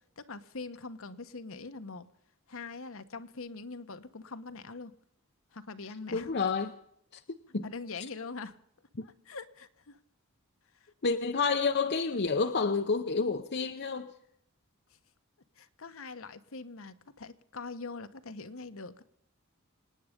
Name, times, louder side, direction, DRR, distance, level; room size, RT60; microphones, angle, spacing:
voice 1, 0.2-2.1 2.5-4.9 5.5-6.4 7.6-8.6 9.0-10.0 15.6-19.0, left 3 dB, 65° left, 1.1 m, -43 dB
voice 2, 6.1-6.7 7.1-7.7 11.0-14.1, left 4 dB, 50° left, 0.8 m, -29 dB
26.0 x 9.6 x 5.1 m
head